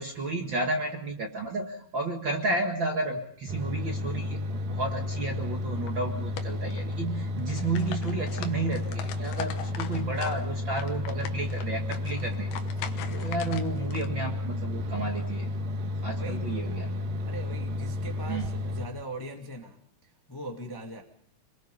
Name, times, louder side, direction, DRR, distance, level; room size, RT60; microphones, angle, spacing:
voice 1, 0.0-4.4 4.7-12.5 13.1-15.5 16.0-16.9 18.3-18.4, right 2 dB, 45° right, 2 dB, 1.8 m, -32 dB
sound 1, 3.5-18.9, left 2 dB, 80° right, 3.0 m, -32 dB
sound 2, 5.6-5.9 6.4-7.1 7.4-10.4 10.7-14.1, left 9 dB, 80° left, 3.0 m, -41 dB
voice 2, 16.1-19.8 20.3-21.0, right 1 dB, 10° left, 1 dB, 1.0 m, -41 dB
26.5 x 21.0 x 5.4 m, 0.64 s
omnidirectional pair, 4.3 m